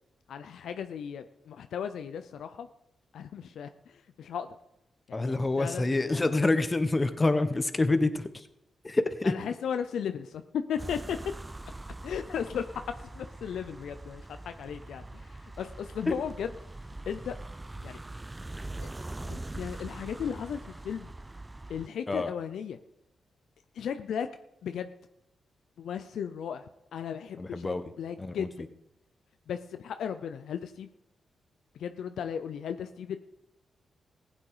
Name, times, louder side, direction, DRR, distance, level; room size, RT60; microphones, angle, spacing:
voice 1, 0.3-2.7 3.1-4.6 5.1-6.3 9.2-11.2 12.0-12.8 13.1-16.8 17.1-17.3 17.8-18.0 19.2-21.1 21.7-22.8 23.7-24.3 24.6-24.9 25.8-28.6 29.5-30.9 31.7-33.2, left 8 dB, 80° left, 9 dB, 0.6 m, -36 dB
voice 2, 5.1-8.5 8.8-9.3 16.1-16.2 22.1-22.3 27.4-27.8 28.2-28.5, left 2 dB, 30° left, 10 dB, 1.3 m, -27 dB
sound 1, 10.8-21.9, right 2 dB, 20° right, 0.4 m, -42 dB
15.5 x 8.6 x 5.0 m, 0.84 s
supercardioid pair, 50°, 0 cm